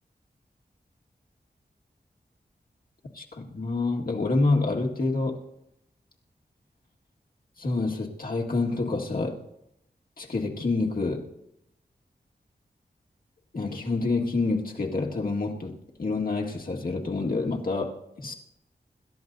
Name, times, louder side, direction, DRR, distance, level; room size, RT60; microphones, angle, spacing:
voice 1, 3.1-5.4 7.6-9.4 10.2-11.3 13.5-18.3, left 3 dB, 60° left, 0 dB, 1.8 m, -27 dB
26.5 x 13.0 x 2.7 m, 0.83 s
wide cardioid pair, 105°, 17 cm